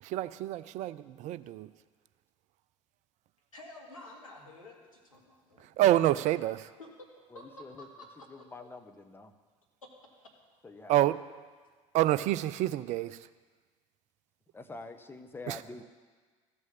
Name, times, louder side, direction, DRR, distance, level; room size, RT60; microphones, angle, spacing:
voice 1, 0.0-1.7 5.6-6.7 10.9-11.2 11.9-13.3 15.5-15.6, right 14 dB, 45° right, 15 dB, 0.5 m, -28 dB
voice 2, 3.5-5.8 6.8-6.9 7.3-8.3, left 1 dB, 85° left, -2 dB, 2.0 m, -50 dB
voice 3, 7.3-7.9 8.3-9.3 10.6-11.0 14.5-15.8, left 2 dB, 15° left, 7 dB, 0.9 m, -46 dB
14.0 x 6.4 x 7.0 m, 1.5 s
figure-of-eight pair, 65°, 17 cm